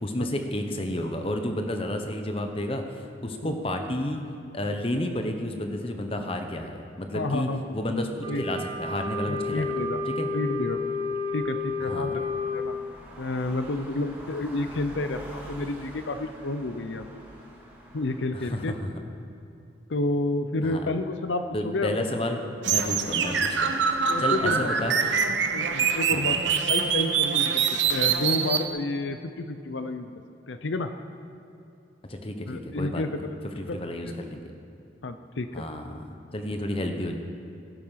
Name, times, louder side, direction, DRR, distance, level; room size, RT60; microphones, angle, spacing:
voice 1, 0.0-4.2 4.5-7.5 7.7-8.1 8.4-9.7 10.0-10.3 11.9-12.1 18.3-18.9 20.6-20.8 21.5-25.1 26.1-26.4 32.1-33.2 33.6-34.4 35.5-36.0 36.3-37.1, left 1 dB, 30° left, 5 dB, 1.1 m, -31 dB
voice 2, 7.1-7.8 8.3-8.4 9.2-10.0 10.3-12.7 13.2-17.2 17.9-18.8 19.9-22.1 24.1-24.7 25.5-30.1 30.5-30.9 32.5-33.4 33.7-33.8 34.0-34.1 35.0-35.7, left 2 dB, 75° left, 9 dB, 0.7 m, -30 dB
Wind instrument woodwind instrument, 8.2-12.7, left 3 dB, 25° right, 3.3 m, -31 dB
sound 1, 8.9-18.3, equal, 10° right, 2.6 m, -47 dB
sound 2, 22.6-28.6, right 6 dB, 75° right, 1.0 m, -24 dB
17.5 x 10.5 x 5.8 m, 2.8 s
head